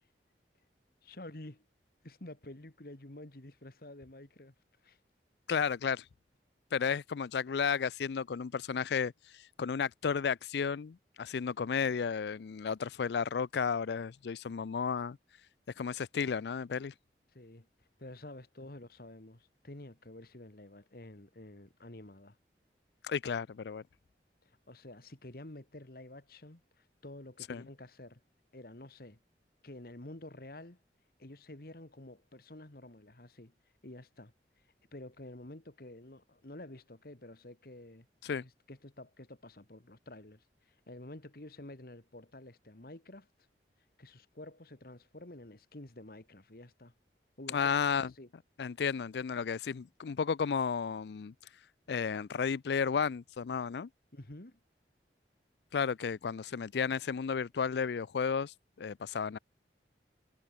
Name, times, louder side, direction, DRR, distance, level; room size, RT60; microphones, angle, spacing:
voice 1, 1.0-1.6 2.0-4.5 4.8-5.0 17.3-22.4 24.7-28.2 28.5-29.2 29.6-30.8 31.2-33.5 33.8-34.3 34.9-38.1 38.3-43.3 44.0-46.9 47.4-47.9 48.1-48.3 54.1-54.6, left 1 dB, 55° left, 1.9 m, -50 dB
voice 2, 5.5-6.0 6.7-15.2 15.8-16.9 23.0-23.8 27.5-27.7 38.2-38.4 47.5-48.1 48.6-51.3 51.9-53.9 55.7-59.4, left 6 dB, 70° left, 0.4 m, -33 dB
head